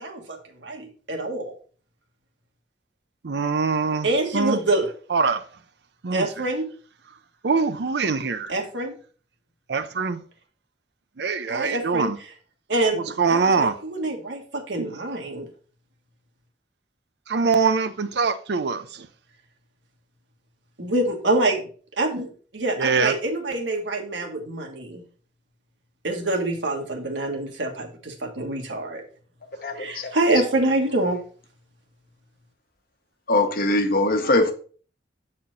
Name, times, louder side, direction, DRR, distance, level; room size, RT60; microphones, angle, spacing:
voice 1, 0.0-1.5 4.0-4.9 6.1-6.6 8.5-8.9 11.5-12.1 12.7-15.5 20.8-21.7 22.0-25.0 26.0-29.0 29.7-31.2, right 2 dB, 90° right, 1.6 m, -26 dB
voice 2, 3.2-4.1 4.3-4.6 5.1-5.4 6.0-6.3 7.4-8.5 9.7-10.2 11.2-12.2 12.9-13.7 14.8-15.0 17.3-19.1 22.8-23.1, right 5 dB, 65° right, 0.6 m, -23 dB
voice 3, 29.6-30.1 33.3-34.5, left 2 dB, 55° left, 1.0 m, -21 dB
7.6 x 4.3 x 4.0 m
head